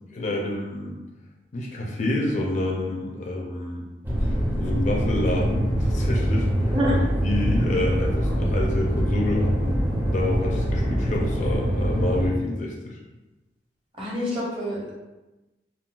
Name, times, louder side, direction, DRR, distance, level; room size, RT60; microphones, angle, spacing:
voice 1, 0.1-1.0 1.5-3.9 4.2-6.7 7.2-13.0, left 2 dB, 40° left, -1 dB, 0.4 m, -28 dB
sound 1, 4.0-12.3, equal, 10° right, 0.6 m, -24 dB
voice 2, 6.7-7.1 14.0-14.9, equal, 30° right, -6 dB, 0.9 m, -26 dB
3.7 x 2.2 x 2.3 m, 1.1 s
head